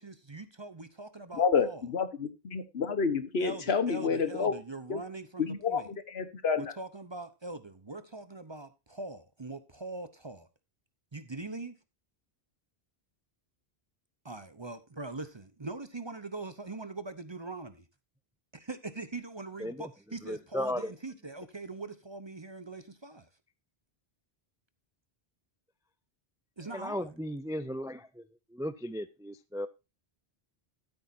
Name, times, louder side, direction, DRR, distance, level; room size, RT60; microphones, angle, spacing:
voice 1, 0.0-1.8 3.4-5.9 6.6-10.5 11.1-11.7 14.2-17.8 18.5-23.3 26.6-27.1, right 3 dB, 30° right, 0.8 m, -42 dB
voice 2, 1.4-4.5 4.9-5.0 5.4-6.7, left 5 dB, 75° left, 1.4 m, -29 dB
voice 3, 20.3-20.9 26.7-28.1 28.5-29.7, equal, 5° right, 0.3 m, -35 dB
13.5 x 8.6 x 2.7 m
omnidirectional pair, 1.1 m